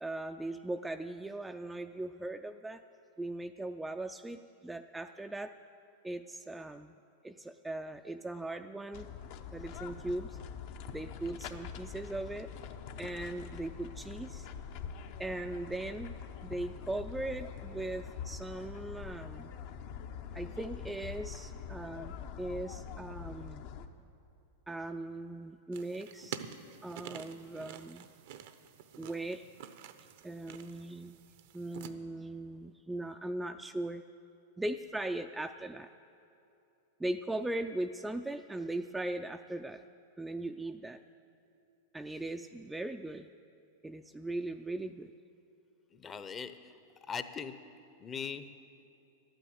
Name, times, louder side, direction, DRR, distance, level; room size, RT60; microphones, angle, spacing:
voice 1, 0.0-2.8 3.2-5.5 6.0-6.9 7.2-9.1 9.5-10.4 10.9-12.5 13.0-14.5 15.2-16.2 16.4-19.5 20.3-23.7 24.7-26.4 26.8-28.1 29.0-29.4 30.2-31.2 31.5-34.0 34.6-35.9 37.0-39.8 40.2-41.0 41.9-43.3 43.8-45.1, right 2 dB, 10° right, 6 dB, 0.3 m, -39 dB
sound 1, 8.9-23.9, left 7 dB, 60° left, 0.8 m, -44 dB
sound 2, 25.7-31.9, right 9 dB, 65° right, 0.7 m, -48 dB
voice 2, 45.9-46.7 47.0-47.6 48.0-48.5, left 6 dB, 25° left, 11 dB, 0.7 m, -40 dB
12.0 x 9.1 x 7.9 m, 2.8 s
hypercardioid pair, 115°, 0 cm